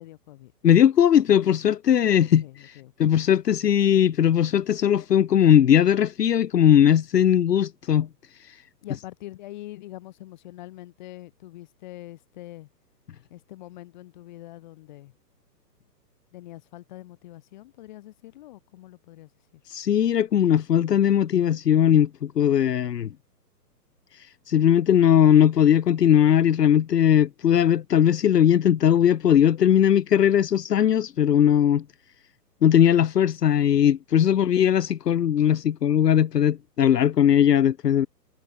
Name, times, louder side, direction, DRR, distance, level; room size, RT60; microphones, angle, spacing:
voice 1, 0.0-0.5 1.9-3.1 8.8-12.7 13.3-15.1 16.3-19.6 34.3-34.6, left 16 dB, 25° left, 6.7 m, -44 dB
voice 2, 0.6-2.7 3.0-8.1 8.4-8.6 19.7-23.1 24.1-31.8 32.6-38.1, left 9 dB, 75° left, 1.1 m, -19 dB
hypercardioid pair, 175°, 49 cm